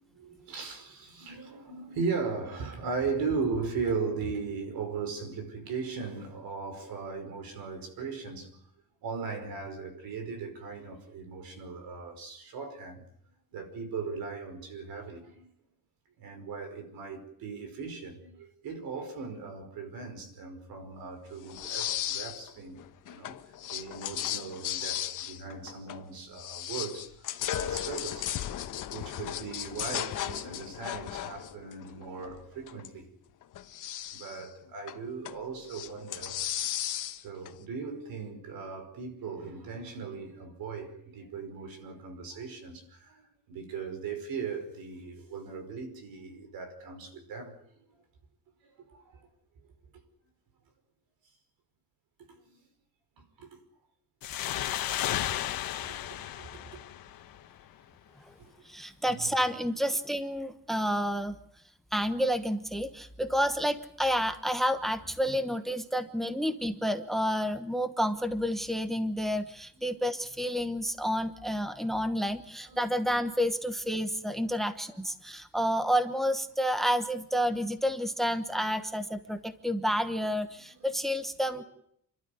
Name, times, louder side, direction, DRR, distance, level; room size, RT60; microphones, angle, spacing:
voice 1, 0.1-8.6 9.0-13.0 13.5-15.5 16.2-23.4 23.7-28.3 28.9-33.1 34.1-36.4 37.2-47.6 48.6-49.3 52.3-52.6 53.2-53.6 55.4-55.5 55.8-56.8 58.4-58.7 59.1-59.4 72.7-72.8 80.8-80.9 81.6-81.7, right 5 dB, 90° right, 5.4 m, -38 dB
sound 1, 21.5-22.5 22.8-26.1 26.4-32.9 33.4-34.5 34.9-35.4 35.7-37.5, left 11 dB, 65° left, 1.2 m, -36 dB
sound 2, 54.2-57.6, left 12 dB, 90° left, 1.3 m, -33 dB
voice 2, 58.6-61.4 61.9-81.6, equal, ahead, 1.1 m, -30 dB
29.0 x 12.5 x 9.4 m
cardioid pair, 170°, 34 cm